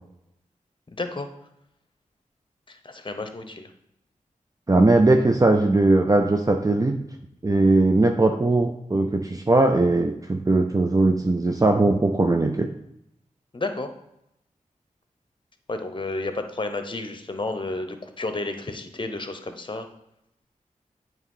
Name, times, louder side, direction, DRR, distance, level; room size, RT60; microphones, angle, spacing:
voice 1, 0.9-1.3 2.7-3.7 13.5-13.9 15.7-19.9, left 2 dB, 35° left, 8 dB, 0.9 m, -31 dB
voice 2, 4.7-7.0 7.4-12.7, right 2 dB, 25° right, 5 dB, 0.5 m, -19 dB
8.1 x 3.0 x 5.5 m, 0.81 s
cardioid pair, 45°, 14 cm